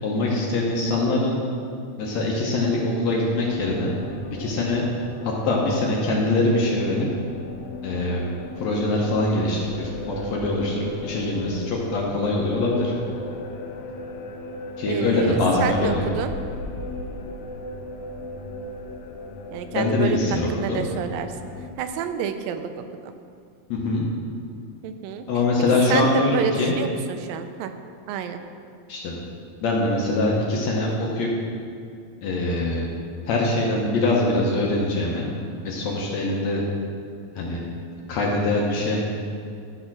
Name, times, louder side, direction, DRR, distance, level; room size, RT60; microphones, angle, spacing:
voice 1, 0.0-1.4 2.0-3.9 4.4-4.8 5.2-7.1 7.8-8.2 8.6-12.9 14.8-16.0 19.7-20.9 23.7-24.1 25.3-26.7 28.9-29.2 29.6-31.3 32.2-32.8 33.3-35.3 35.6-36.6 37.4-37.6 38.1-39.0, left 2 dB, 65° left, -2 dB, 1.9 m, -23 dB
sound 1, 3.4-21.7, left 2 dB, 90° left, 2.5 m, -37 dB
voice 2, 14.9-16.3 19.5-21.3 21.8-23.1 24.8-25.3 25.9-27.7 28.1-28.4, right 8 dB, 85° right, 8 dB, 2.3 m, -29 dB
12.5 x 4.3 x 6.0 m, 2.4 s
omnidirectional pair, 4.0 m